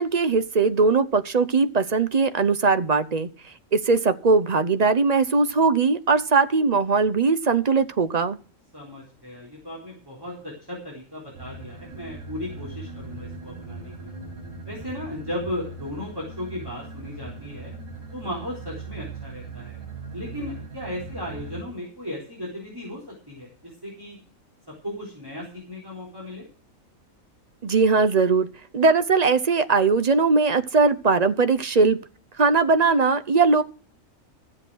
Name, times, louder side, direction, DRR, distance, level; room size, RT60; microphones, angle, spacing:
voice 1, 0.0-3.3 3.7-8.4 27.6-28.5 28.7-32.0 32.4-33.6, right 4 dB, 40° right, 0.6 m, -20 dB
voice 2, 8.7-14.1 14.7-17.7 18.1-19.8 20.1-24.2 24.8-26.5, left 1 dB, 15° right, 3.8 m, -36 dB
sound 1, 11.3-21.6, right 3 dB, 65° right, 4.8 m, -39 dB
13.5 x 7.6 x 6.2 m
omnidirectional pair, 1.4 m